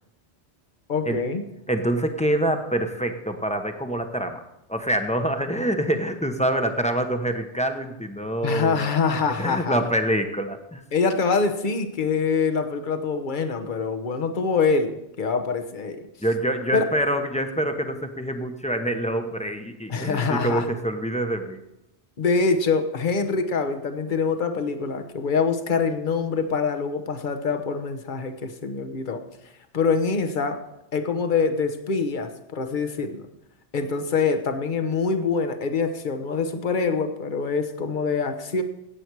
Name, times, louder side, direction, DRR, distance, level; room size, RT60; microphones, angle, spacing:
voice 1, 0.9-1.4 8.4-9.8 10.9-16.0 16.7-16.8 19.9-20.7 22.2-29.2 29.7-30.6 30.9-33.2 33.7-38.6, left 5 dB, 45° left, 7 dB, 1.2 m, -25 dB
voice 2, 1.7-4.4 4.7-8.9 9.4-10.8 16.2-21.6, right 1 dB, 5° left, 6 dB, 0.9 m, -26 dB
16.5 x 8.1 x 4.7 m, 0.86 s
omnidirectional pair, 1.2 m